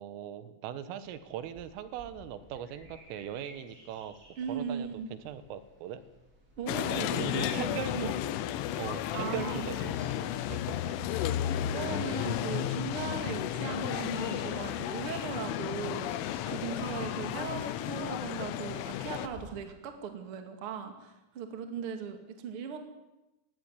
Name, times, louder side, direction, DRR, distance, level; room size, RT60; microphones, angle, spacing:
voice 1, 0.0-4.2 4.5-6.0 7.1-8.2 8.8-11.0, right 9 dB, 85° right, 12 dB, 3.8 m, -40 dB
sound 1, 1.0-19.6, equal, 20° right, 4.7 m, -56 dB
voice 2, 4.4-5.1 6.6-8.1 9.1-9.7 11.7-22.8, right 6 dB, 40° right, 6 dB, 2.2 m, -38 dB
sound 2, 6.7-19.3, left 11 dB, 80° left, 3.4 m, -33 dB
20.0 x 16.0 x 9.7 m, 1.0 s
omnidirectional pair, 5.8 m